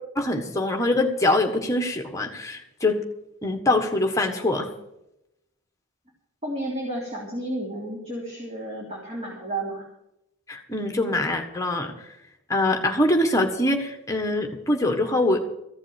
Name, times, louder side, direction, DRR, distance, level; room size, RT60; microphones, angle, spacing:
voice 1, 0.1-3.0 3.4-4.7 10.5-11.9 12.5-15.4, left 2 dB, 15° left, 4 dB, 1.5 m, -23 dB
voice 2, 6.4-9.8, right 1 dB, 30° right, -4 dB, 3.3 m, -32 dB
15.0 x 7.2 x 8.8 m, 0.85 s
head